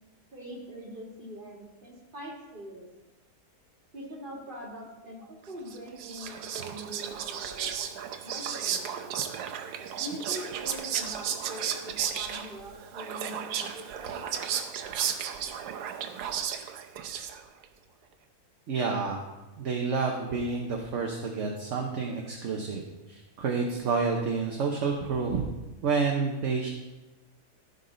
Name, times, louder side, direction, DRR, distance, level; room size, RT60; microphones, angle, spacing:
voice 1, 0.3-2.9 3.9-9.1 10.0-14.2, equal, 30° right, -3 dB, 2.1 m, -43 dB
Whispering, 5.7-17.6, right 8 dB, 85° right, 1.3 m, -34 dB
voice 2, 18.7-19.2 19.6-22.8 23.1-25.5 25.8-26.7, right 4 dB, 55° right, 1 dB, 1.1 m, -29 dB
15.0 x 5.4 x 3.8 m, 1.1 s
omnidirectional pair, 1.7 m